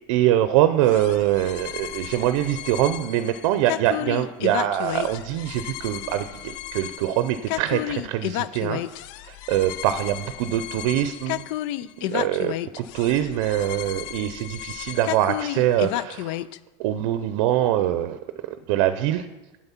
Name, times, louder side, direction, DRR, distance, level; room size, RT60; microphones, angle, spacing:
voice 1, 0.1-8.8 9.3-11.4 12.0-16.4 16.8-18.2 18.5-19.3, right 12 dB, 70° right, 11 dB, 0.6 m, -23 dB
sound 1, 0.9-16.6, left 15 dB, 70° left, 0.4 m, -32 dB
7.9 x 7.8 x 5.7 m, 1.0 s
supercardioid pair, 130°, 16 cm